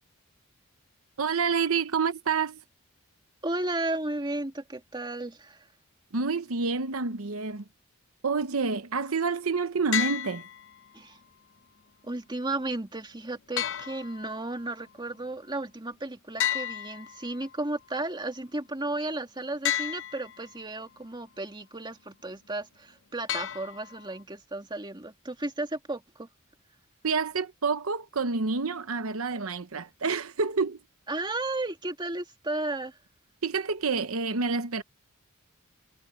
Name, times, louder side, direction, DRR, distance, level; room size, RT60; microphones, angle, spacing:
voice 1, 1.2-2.6 6.1-7.6 8.2-10.4 27.0-30.8 33.4-34.8, right 4 dB, 75° right, 0.9 m, -28 dB
voice 2, 3.4-5.7 10.9-11.2 12.0-26.3 31.1-33.0, right 2 dB, 20° right, 2.2 m, -34 dB
sound 1, 9.9-10.9 13.6-14.6 16.4-17.6 19.6-20.6 23.3-24.2, left 10 dB, 60° left, 0.7 m, -32 dB
head